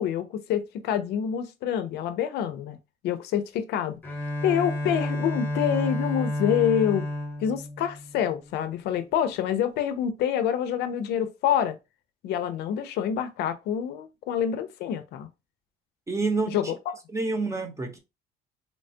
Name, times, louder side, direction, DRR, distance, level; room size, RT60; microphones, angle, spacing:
voice 1, 0.0-2.8 3.0-4.0 4.4-7.0 7.4-11.8 12.2-15.3 16.5-16.7, left 9 dB, 75° left, 0.5 m, -27 dB
Bowed string instrument, 4.0-8.8, left 1 dB, 10° left, 0.9 m, -31 dB
voice 2, 16.1-16.7 17.1-18.0, right 3 dB, 15° right, 0.8 m, -28 dB
3.1 x 2.2 x 2.6 m
cardioid pair, 110°, 17 cm